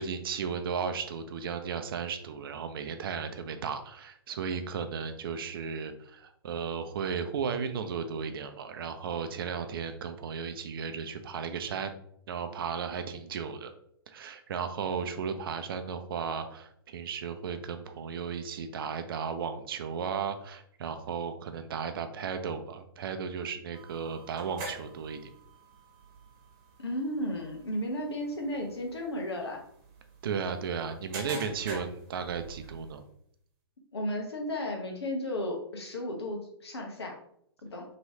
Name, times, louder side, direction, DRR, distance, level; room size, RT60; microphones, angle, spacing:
voice 1, 0.0-11.9 12.3-13.7 14.1-25.3 30.2-33.0, right 6 dB, 60° right, 8 dB, 0.5 m, -35 dB
sound 1, 23.7-33.0, right 2 dB, 35° right, 1.1 m, -46 dB
voice 2, 26.8-29.6 33.9-37.1 37.6-37.8, left 1 dB, 80° left, 1 dB, 1.0 m, -34 dB
3.1 x 2.9 x 2.8 m, 0.68 s
hypercardioid pair, 120°, 14 cm